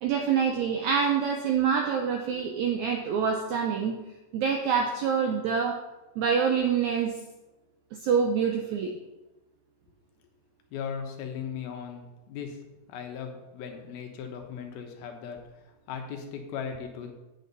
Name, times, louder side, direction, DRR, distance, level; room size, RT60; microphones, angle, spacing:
voice 1, 0.0-4.0 4.3-5.8 6.2-7.2 7.9-8.9, right 6 dB, 85° right, 3 dB, 1.6 m, -26 dB
voice 2, 10.7-12.6 12.9-15.4 15.9-17.1, left 7 dB, 85° left, 3 dB, 3.0 m, -37 dB
9.0 x 8.5 x 4.1 m, 1.0 s
omnidirectional pair, 4.2 m